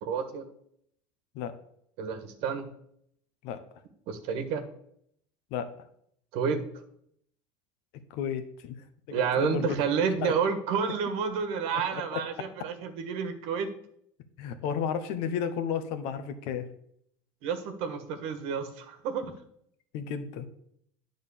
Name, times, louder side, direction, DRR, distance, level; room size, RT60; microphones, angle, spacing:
voice 1, 0.0-0.4 2.0-2.7 4.1-4.6 6.3-6.6 9.1-13.7 17.4-19.3, right 6 dB, 70° right, 8 dB, 1.4 m, -30 dB
voice 2, 8.1-8.7 9.1-9.8 10.2-10.3 11.9-12.7 14.4-16.7 19.9-20.5, left 7 dB, 70° left, 10 dB, 1.0 m, -33 dB
9.4 x 3.9 x 7.0 m, 0.70 s
supercardioid pair, 125°, 10 cm